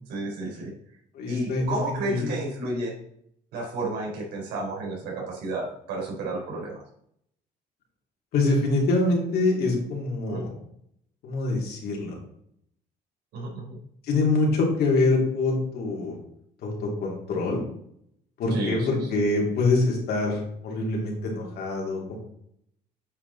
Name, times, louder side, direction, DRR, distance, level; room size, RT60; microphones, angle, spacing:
voice 1, 0.1-0.7 1.3-2.9 3.5-6.7 10.3-10.4 13.3-13.8 18.5-18.9, right 2 dB, 80° right, -2 dB, 3.6 m, -31 dB
voice 2, 1.1-1.6 2.1-2.3 8.3-10.5 11.2-12.1 14.1-16.1 16.6-16.7 17.0-17.6 18.4-22.2, left 2 dB, 70° left, -1 dB, 3.0 m, -25 dB
8.8 x 5.1 x 4.1 m, 0.71 s
cardioid pair, 110°, 17 cm